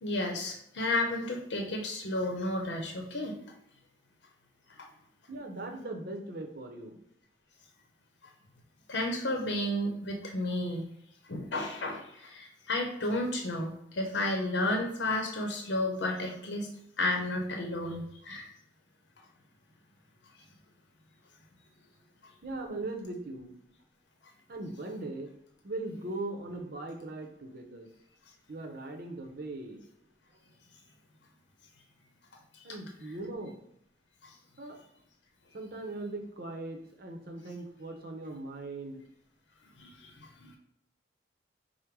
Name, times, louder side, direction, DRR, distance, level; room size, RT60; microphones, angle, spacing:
voice 1, 0.0-3.4 8.9-10.8 11.3-16.7 17.0-18.5 34.2-34.3 39.8-40.6, left 1 dB, 80° left, 2 dB, 0.7 m, -32 dB
voice 2, 5.3-7.0 22.4-23.5 24.5-25.3 25.6-27.9 28.5-29.8 32.6-33.6 34.6-34.8 35.5-39.0, right 2 dB, 60° right, 3 dB, 0.8 m, -39 dB
5.1 x 2.1 x 4.6 m, 0.72 s
head